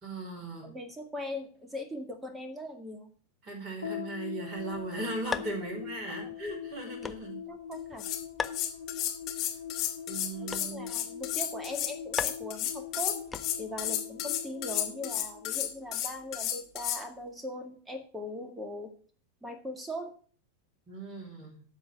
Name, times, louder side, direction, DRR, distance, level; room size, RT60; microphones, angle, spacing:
voice 1, 0.0-0.7 3.4-7.4 10.1-10.9 20.9-21.6, right 2 dB, 30° right, 0 dB, 5.1 m, -38 dB
voice 2, 0.6-3.1 6.1-6.3 7.5-8.0 10.4-13.2 13.6-18.9 19.4-20.1, left 1 dB, 10° right, 6 dB, 2.1 m, -40 dB
sound 1, 3.8-16.3, left 8 dB, 80° left, 1.8 m, -42 dB
sound 2, 4.6-13.9, left 5 dB, 15° left, 0.6 m, -42 dB
sound 3, 7.7-7.8 8.0-17.0, left 11 dB, 35° left, 2.0 m, -32 dB
13.0 x 4.4 x 6.7 m, 0.43 s
figure-of-eight pair, 90°, 0 cm